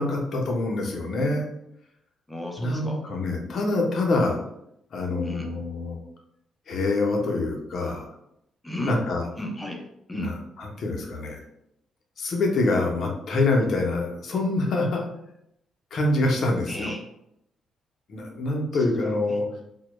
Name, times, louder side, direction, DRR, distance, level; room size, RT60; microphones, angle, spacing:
voice 1, 0.0-1.5 2.6-4.4 4.9-6.0 6.7-8.1 8.8-9.2 10.2-10.3 10.6-11.4 12.2-15.1 15.9-16.9 18.1-19.5, left 2 dB, 60° left, 1 dB, 0.5 m, -25 dB
voice 2, 2.3-3.0 5.2-5.5 8.6-9.0 9.4-10.4 16.7-17.0 18.7-19.4, equal, 10° left, 2 dB, 0.5 m, -34 dB
2.1 x 2.1 x 2.9 m, 0.78 s
cardioid pair, 90°, 0 cm